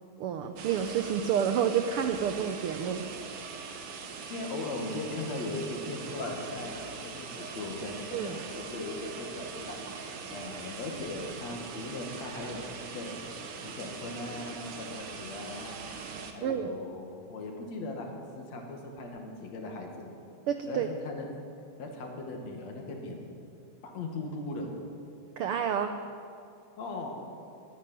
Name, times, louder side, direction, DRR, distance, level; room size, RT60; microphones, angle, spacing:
voice 1, 0.2-3.0 8.1-8.4 16.4-16.7 20.5-20.9 25.4-25.9, right 8 dB, 80° right, 7 dB, 1.2 m, -29 dB
sound 1, 0.6-16.3, right 5 dB, 55° right, 1.8 m, -41 dB
voice 2, 3.9-13.1 13.6-15.8 16.3-18.1 18.4-20.1 20.7-21.3 21.8-23.2 23.8-24.7 26.8-27.1, left 2 dB, 65° left, 2 dB, 3.1 m, -39 dB
14.0 x 10.0 x 9.9 m, 2.5 s
omnidirectional pair, 3.4 m